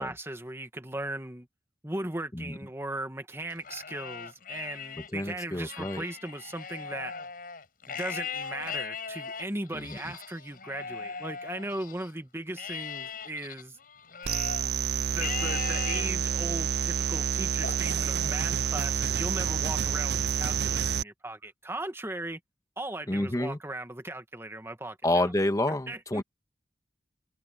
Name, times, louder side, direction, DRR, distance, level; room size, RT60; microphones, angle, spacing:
voice 1, 0.0-1.5 1.8-7.1 7.9-13.8 15.1-22.4 22.8-25.3 25.9-26.2, right 1 dB, 15° right, 1.7 m, -38 dB
Livestock farm animals working animals, 3.5-5.1 5.5-12.1 12.6-14.7 15.2-16.1 16.6-17.1 17.6-18.7, left 6 dB, 55° left, 6.8 m, -39 dB
voice 2, 5.1-6.0 9.7-10.0 23.1-23.6 25.0-26.2, left 1 dB, 20° left, 1.4 m, -28 dB
sound 1, 14.2-21.0, right 8 dB, 65° right, 0.5 m, -28 dB
head